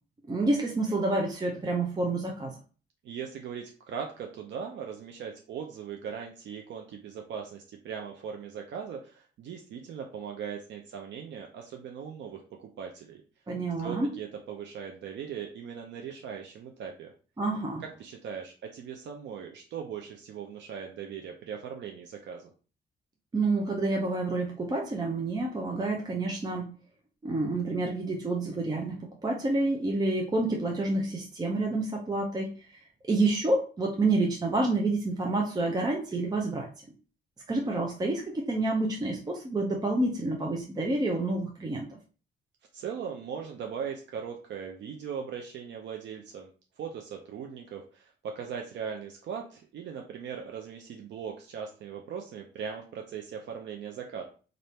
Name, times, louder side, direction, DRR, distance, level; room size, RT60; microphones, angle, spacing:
voice 1, 0.3-2.5 13.5-14.2 17.4-17.8 23.3-26.7 27.2-32.5 33.0-36.7 37.5-42.0, right 2 dB, 20° right, 0 dB, 0.6 m, -28 dB
voice 2, 3.0-13.2 13.8-17.1 18.0-22.5 42.7-46.5 46.8-54.2, right 7 dB, 75° right, 2 dB, 0.6 m, -39 dB
3.4 x 2.6 x 4.2 m, 0.37 s
cardioid pair, 140°, 19 cm